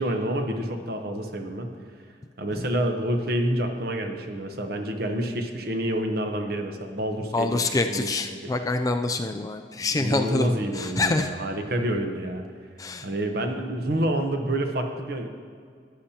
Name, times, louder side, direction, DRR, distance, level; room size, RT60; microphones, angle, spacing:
voice 1, 0.0-1.7 2.4-8.5 9.9-12.4 13.0-15.3, right 1 dB, 55° right, 5 dB, 0.9 m, -28 dB
voice 2, 7.3-10.5 10.7-11.3 12.8-13.1, left 2 dB, 20° left, 7 dB, 0.3 m, -26 dB
13.5 x 10.0 x 2.8 m, 2.1 s
head